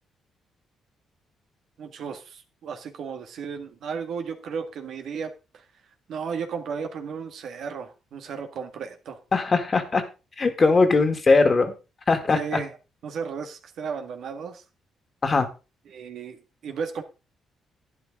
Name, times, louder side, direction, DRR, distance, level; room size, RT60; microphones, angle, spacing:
voice 1, 1.8-5.7 6.1-9.2 12.3-12.8 13.0-14.6 15.9-17.0, right 6 dB, 70° right, 5 dB, 1.9 m, -34 dB
voice 2, 9.3-10.0 10.4-11.7 12.1-12.6 15.2-15.5, left 3 dB, 35° left, 7 dB, 2.2 m, -20 dB
11.5 x 10.0 x 3.8 m, 0.30 s
cardioid pair, 90°, 0 cm